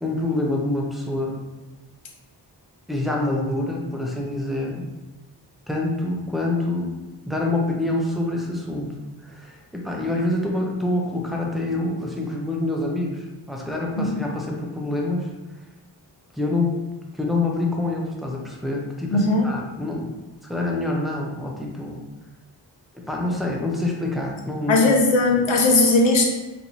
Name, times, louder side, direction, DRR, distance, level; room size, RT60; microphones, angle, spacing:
voice 1, 0.0-1.4 2.9-4.8 5.7-6.9 7.3-15.3 16.3-16.8 17.1-20.1 20.4-22.0 23.1-24.8, left 2 dB, ahead, -1 dB, 0.6 m, -26 dB
voice 2, 19.1-19.5 24.7-26.3, left 2 dB, 90° left, 1 dB, 0.7 m, -18 dB
4.5 x 2.7 x 2.7 m, 1.1 s
wide cardioid pair, 90°, 45 cm